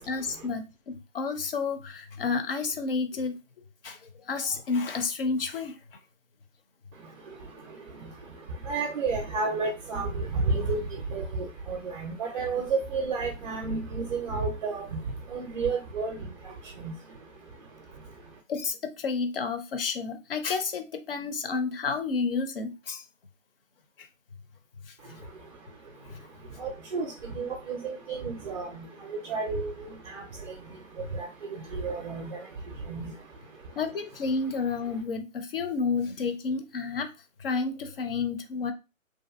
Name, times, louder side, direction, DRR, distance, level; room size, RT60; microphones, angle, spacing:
voice 1, 0.0-3.4 3.8-4.0 4.3-5.7 18.5-23.0 33.8-37.1 37.4-38.7, left 4 dB, 45° left, 8 dB, 0.5 m, -30 dB
voice 2, 8.7-10.8 11.1-11.2 11.7-14.8 15.3-16.2 16.8-16.9 26.6-27.1 27.4-28.8 29.3-29.7 30.1-30.2 31.2-31.3 31.7-32.3 32.9-33.1, right 4 dB, 40° right, 1 dB, 0.5 m, -30 dB
2.6 x 2.4 x 2.4 m, 0.28 s
hypercardioid pair, 145°, 41 cm